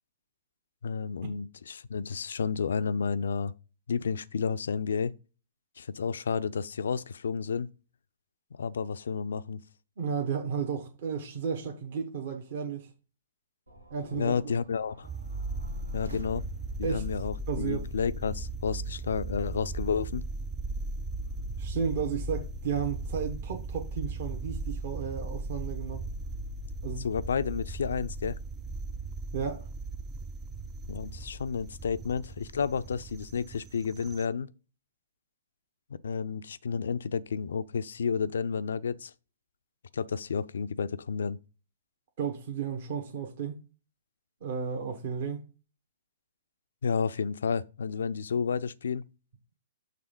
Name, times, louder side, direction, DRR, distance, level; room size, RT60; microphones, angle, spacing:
voice 1, 0.8-3.5 3.9-5.1 5.8-7.7 8.5-9.6 14.1-15.1 15.9-16.4 16.8-20.3 27.0-28.4 30.9-34.5 36.0-39.1 39.9-41.4 46.8-49.1, left 6 dB, 60° left, 0.4 m, -31 dB
voice 2, 10.0-12.9 13.9-14.5 16.8-17.0 17.5-17.9 21.6-26.0 26.8-27.1 29.3-29.7 42.2-43.6 44.4-45.4, right 6 dB, 45° right, 1.1 m, -33 dB
sound 1, 13.7-17.0, equal, 80° right, 1.3 m, -50 dB
sound 2, 15.0-34.3, right 2 dB, 15° right, 0.4 m, -37 dB
6.6 x 3.4 x 5.1 m
figure-of-eight pair, 115°, 0 cm